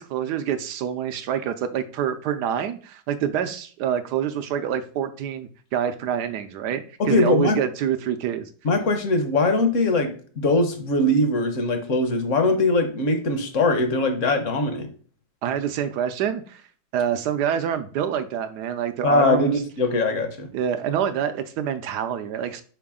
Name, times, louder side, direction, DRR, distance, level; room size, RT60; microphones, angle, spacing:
voice 1, 0.0-8.5 15.4-16.6 16.9-19.6 20.5-22.6, right 9 dB, 75° right, 10 dB, 1.0 m, -26 dB
voice 2, 7.0-7.6 8.6-14.9 19.0-20.5, left 2 dB, 50° left, 7 dB, 1.0 m, -21 dB
5.9 x 4.7 x 3.6 m, 0.44 s
omnidirectional pair, 2.1 m